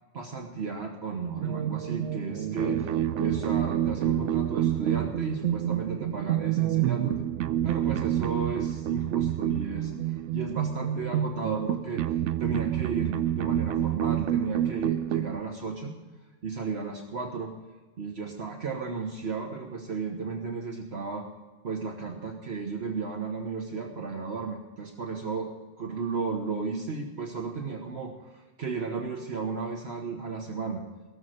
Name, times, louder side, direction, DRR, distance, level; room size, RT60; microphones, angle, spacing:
voice 1, 0.1-7.1 7.6-12.0 12.4-15.9 16.4-17.5 18.0-21.3 21.6-25.5 25.8-30.8, right 4 dB, 60° right, 2 dB, 1.4 m, -34 dB
sound 1, 1.4-15.4, right 11 dB, 80° right, 0.9 m, -28 dB
17.5 x 7.3 x 6.4 m, 1.3 s
omnidirectional pair, 1.2 m